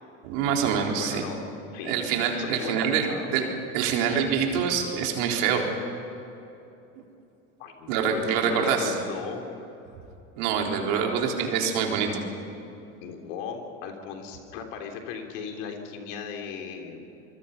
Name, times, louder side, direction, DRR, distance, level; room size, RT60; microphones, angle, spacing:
voice 1, 0.2-1.2 1.9-5.7 7.9-9.0 10.4-12.2, right 6 dB, 70° right, 1 dB, 4.0 m, -25 dB
voice 2, 1.0-1.4 1.7-1.9 2.4-3.3 7.6-9.4 10.9-11.1 13.0-17.0, left 6 dB, 70° left, 3 dB, 3.6 m, -37 dB
26.0 x 23.0 x 5.7 m, 2.9 s
hypercardioid pair, 85°, 38 cm